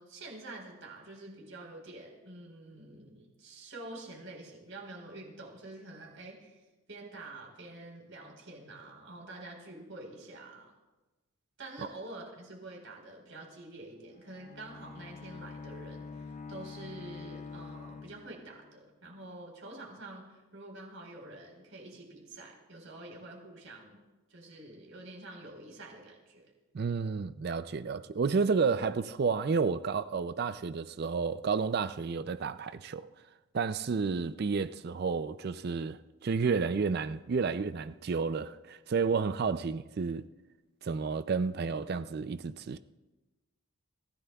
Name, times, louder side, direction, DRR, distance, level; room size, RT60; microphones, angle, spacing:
voice 1, 0.0-10.7 11.6-24.0 24.3-26.4, right 2 dB, 60° right, 4.3 m, -47 dB
Bowed string instrument, 14.1-18.8, left 4 dB, 35° left, 0.3 m, -46 dB
voice 2, 26.7-33.1 33.5-40.3 40.8-42.8, right 5 dB, 45° right, 0.4 m, -31 dB
25.5 x 15.5 x 2.3 m
head